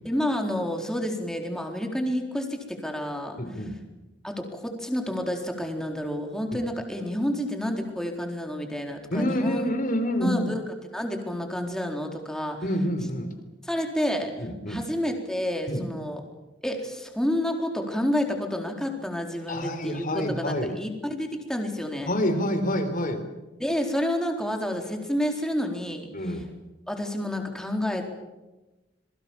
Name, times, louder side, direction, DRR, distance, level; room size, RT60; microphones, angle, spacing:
voice 1, 0.0-3.4 4.2-9.7 10.2-10.6 10.9-12.6 13.6-14.3 14.7-16.2 16.6-22.2 23.6-26.1 26.9-28.1, equal, 5° left, 3 dB, 4.2 m, -29 dB
voice 2, 3.4-3.8 6.5-6.6 9.1-10.5 12.6-13.3 14.4-14.8 15.7-15.9 19.5-20.7 22.1-23.3 26.1-26.5, left 1 dB, 50° left, 7 dB, 3.8 m, -27 dB
27.5 x 22.5 x 7.4 m, 1.1 s
head